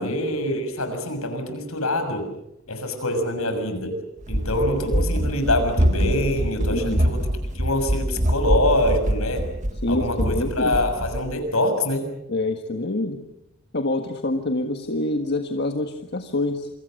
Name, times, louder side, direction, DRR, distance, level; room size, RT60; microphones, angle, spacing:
voice 1, 0.0-2.3 2.7-4.0 4.3-7.2 7.5-9.5 9.9-12.1, left 1 dB, 75° left, 7 dB, 6.5 m, -25 dB
Run, 4.2-11.3, equal, 35° right, 1.5 m, -24 dB
voice 2, 6.7-7.0 9.8-10.8 12.3-13.2 13.7-16.7, left 2 dB, 50° left, 5 dB, 1.6 m, -26 dB
28.0 x 25.5 x 6.6 m, 0.84 s
head